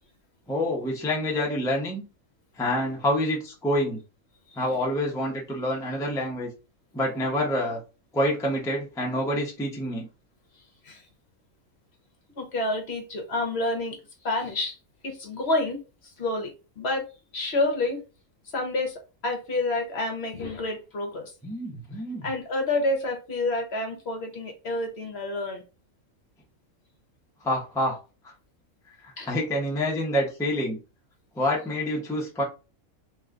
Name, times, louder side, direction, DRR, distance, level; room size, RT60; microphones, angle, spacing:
voice 1, 0.5-2.0 2.6-4.0 4.6-6.5 6.9-7.8 8.1-10.1 21.4-22.2 27.4-28.0 29.0-30.8 31.4-32.4, left 1 dB, 5° left, -2 dB, 0.5 m, -27 dB
voice 2, 12.4-14.0 14.2-14.8 15.0-17.1 17.3-18.0 18.5-21.3 22.2-25.6 29.2-29.3, left 2 dB, 55° left, 3 dB, 1.0 m, -29 dB
3.0 x 2.3 x 3.7 m, 0.31 s
omnidirectional pair, 1.5 m